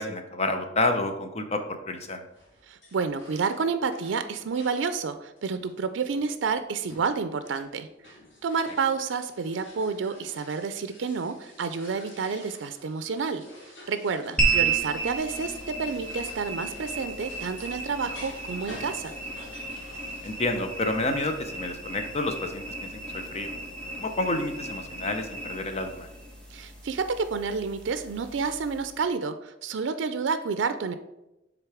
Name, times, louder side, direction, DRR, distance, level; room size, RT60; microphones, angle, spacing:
voice 1, 0.0-2.2 20.2-23.5 24.0-26.1, left 2 dB, 35° left, 6 dB, 0.7 m, -29 dB
sound 1, 2.3-5.0 5.4-20.5, left 1 dB, 85° left, 2.0 m, -49 dB
voice 2, 2.7-7.9 8.4-13.5 13.9-19.1 26.5-30.9, right 5 dB, 80° right, 11 dB, 0.4 m, -29 dB
sound 2, 14.4-29.0, right 4 dB, 5° left, 1.4 m, -33 dB
6.6 x 3.8 x 4.8 m, 0.93 s
head